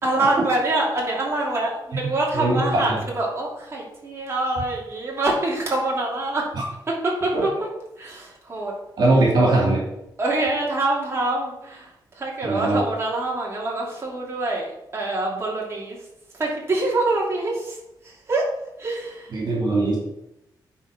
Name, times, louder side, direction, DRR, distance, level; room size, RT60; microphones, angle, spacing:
voice 1, 0.0-6.5 6.9-7.5 8.0-8.7 9.1-9.2 10.2-11.9 12.2-16.0 16.3-17.8 18.0-18.5 18.8-19.4, right 2 dB, 35° right, -3 dB, 2.7 m, -25 dB
voice 2, 2.3-2.8 9.0-9.8 12.4-12.8 19.3-20.0, right 2 dB, 65° right, -3 dB, 2.8 m, -20 dB
9.7 x 4.6 x 5.2 m, 0.86 s
wide cardioid pair, 145°, 8 cm